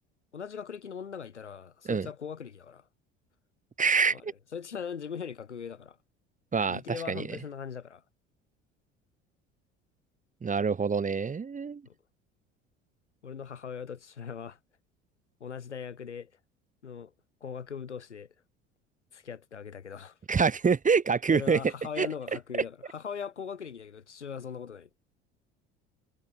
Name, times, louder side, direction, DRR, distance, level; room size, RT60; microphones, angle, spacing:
voice 1, 0.3-2.8 4.1-4.2 4.5-6.0 6.7-8.0 11.8-11.9 13.2-14.6 15.4-16.3 16.8-17.1 17.4-18.3 19.1-20.2 21.3-24.9, left 7 dB, 85° left, 2.9 m, -40 dB
voice 2, 3.8-4.3 6.5-7.4 10.4-11.8 20.3-21.6 22.0-22.1, right 5 dB, 25° right, 1.6 m, -26 dB
figure-of-eight pair, 60°, 34 cm